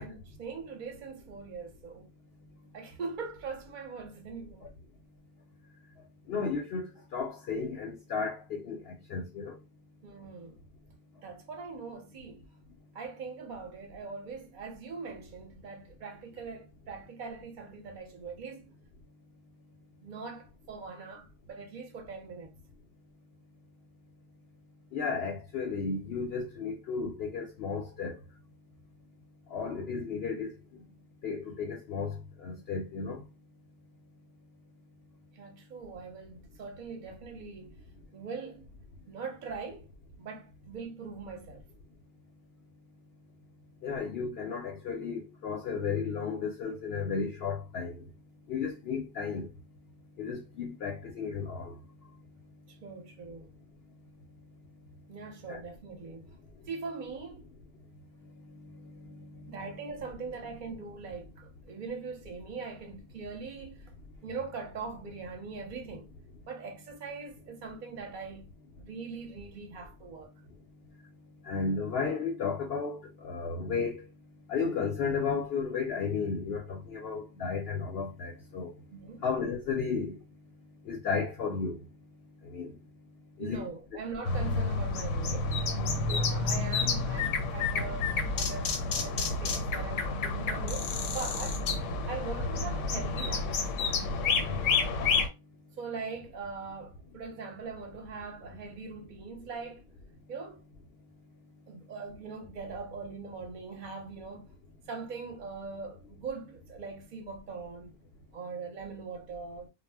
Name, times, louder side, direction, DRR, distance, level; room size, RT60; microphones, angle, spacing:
voice 1, 0.0-2.1 2.7-4.7 10.0-10.6 11.2-12.5 12.9-18.8 20.0-22.5 35.3-37.8 38.1-38.7 39.1-39.9 40.2-41.6 52.8-53.5 55.1-56.3 56.7-57.5 59.5-63.9 64.2-66.1 66.5-68.5 68.8-70.3 78.9-79.2 83.4-85.5 86.1-91.6 92.0-93.6 95.8-99.8 100.3-100.6 101.7-104.5 104.9-107.9 108.3-109.7, right 4 dB, 50° right, 0.7 m, -41 dB
voice 2, 6.3-9.6 24.9-28.2 29.5-30.5 31.2-33.3 43.8-48.0 48.5-49.5 50.2-51.8 55.5-55.6 58.4-59.6 71.4-74.0 74.5-78.7 79.2-80.2 80.8-81.8 82.4-82.8 83.4-83.7 85.9-86.3 94.4-94.7, left 5 dB, 60° left, 0.7 m, -34 dB
sound 1, 84.2-95.3, left 4 dB, 85° left, 0.9 m, -30 dB
2.0 x 2.0 x 3.4 m
omnidirectional pair, 1.3 m